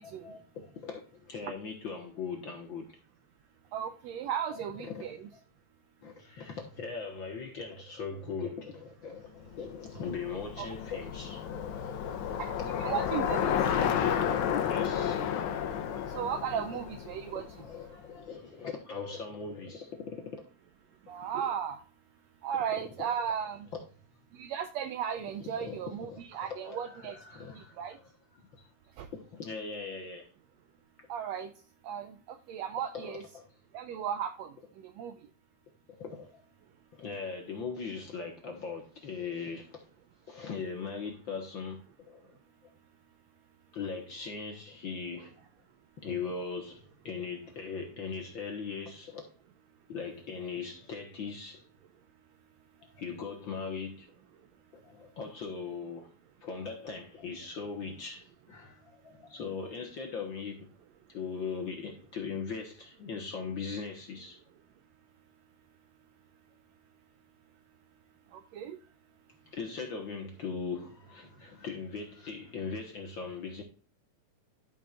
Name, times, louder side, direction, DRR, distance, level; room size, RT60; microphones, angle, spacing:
voice 1, 0.2-3.0 4.5-5.1 6.0-12.5 13.8-15.3 17.6-20.4 23.0-23.1 25.6-28.0 28.3-28.7 29.1-30.3 32.9-33.5 35.9-36.4 36.9-39.8 40.3-42.3 42.6-42.7 43.7-45.4 46.0-49.3 49.9-51.6 52.8-54.1 54.7-56.1 56.4-60.7 61.1-64.4 69.5-73.6, left 5 dB, 55° left, 1.5 m, -40 dB
voice 2, 3.7-5.3 10.6-10.7 12.4-13.6 16.1-17.5 21.1-21.8 22.4-23.7 24.3-27.2 27.5-28.0 29.0-29.1 31.1-31.5 31.8-33.2 33.7-34.5 34.8-35.1 68.3-68.8, right 8 dB, 80° right, 1.6 m, -35 dB
Bicycle, 9.6-17.9, left 8 dB, 75° left, 2.1 m, -32 dB
12.5 x 5.9 x 2.4 m
omnidirectional pair, 3.6 m